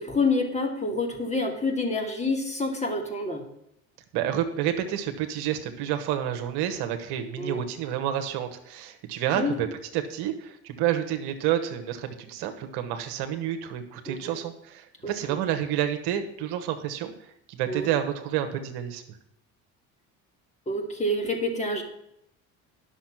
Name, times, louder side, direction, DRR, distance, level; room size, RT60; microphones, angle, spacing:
voice 1, 0.0-3.4 7.4-7.6 9.3-9.6 14.1-14.4 15.0-15.4 17.7-17.9 20.7-21.8, left 2 dB, 15° left, 3 dB, 2.4 m, -28 dB
voice 2, 4.1-9.7 9.9-17.1 17.5-19.0, right 10 dB, 65° right, 7 dB, 1.3 m, -29 dB
10.0 x 6.4 x 6.1 m, 0.77 s
hypercardioid pair, 70°, 42 cm